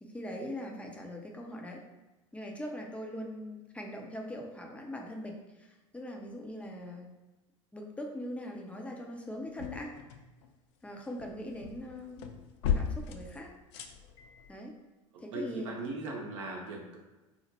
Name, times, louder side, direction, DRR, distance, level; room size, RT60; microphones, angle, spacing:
voice 1, 0.0-1.8 2.3-7.1 7.7-9.9 10.8-12.3 12.7-13.5 14.5-14.7 15.2-15.7, left 1 dB, 10° left, 1 dB, 0.5 m, -41 dB
sound 1, 9.3-10.5 10.9-14.5, left 7 dB, 60° left, 0.4 m, -37 dB
voice 2, 15.1-17.0, right 2 dB, 65° right, 0 dB, 0.6 m, -39 dB
4.1 x 2.1 x 2.8 m, 1.1 s
figure-of-eight pair, 75°, 17 cm